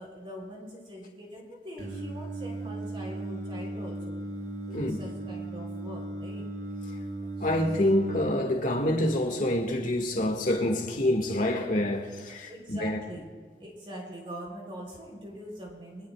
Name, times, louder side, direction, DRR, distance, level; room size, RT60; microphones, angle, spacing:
voice 1, 0.0-4.2 4.7-6.5 7.4-7.5 12.5-13.3 13.6-16.1, equal, 30° right, 3.8 m, -43 dB
Singing, 1.8-8.3, right 2 dB, 55° right, 4.8 m, -36 dB
voice 2, 7.4-13.0, left 1 dB, 50° left, 1.9 m, -27 dB
23.5 x 18.5 x 2.4 m
head